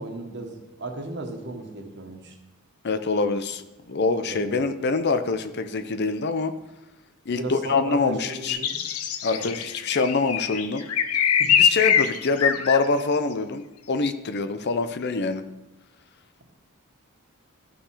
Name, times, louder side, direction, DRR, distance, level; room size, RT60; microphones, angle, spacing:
voice 1, 0.0-2.4 4.2-4.6 7.3-8.8 9.3-9.5 11.4-11.5, right 2 dB, 55° right, 3 dB, 1.6 m, -35 dB
voice 2, 2.8-3.6 3.9-6.5 7.3-8.6 9.2-10.9 11.6-15.4, left 4 dB, 50° left, 11 dB, 0.6 m, -25 dB
sound 1, 8.5-12.8, left 8 dB, 90° left, 0.7 m, -23 dB
13.5 x 6.0 x 4.9 m, 0.99 s
head